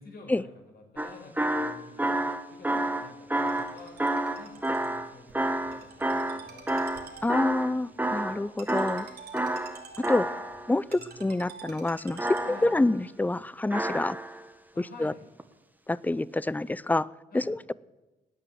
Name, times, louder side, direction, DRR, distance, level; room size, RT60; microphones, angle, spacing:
voice 1, 0.0-2.2 2.5-4.0 4.3-7.0 7.6-8.4 10.0-10.5 10.9-11.2 12.4-12.7 14.7-15.2 17.3-17.5, left 3 dB, 60° left, 1 dB, 5.0 m, -50 dB
sound 1, 1.0-7.7 8.0-8.4 8.7-10.8 12.2-12.9 13.7-14.4 15.4-15.5, right 1 dB, 10° right, 1.4 m, -29 dB
Ringtone, 3.4-12.9, right 5 dB, 65° right, 2.3 m, -49 dB
voice 2, 7.2-9.1 10.1-10.3 10.7-14.2 15.0-15.1 15.9-17.1 17.3-17.7, left 2 dB, 10° left, 21 dB, 0.5 m, -27 dB
18.5 x 8.9 x 7.7 m, 1.1 s
supercardioid pair, 55°, 18 cm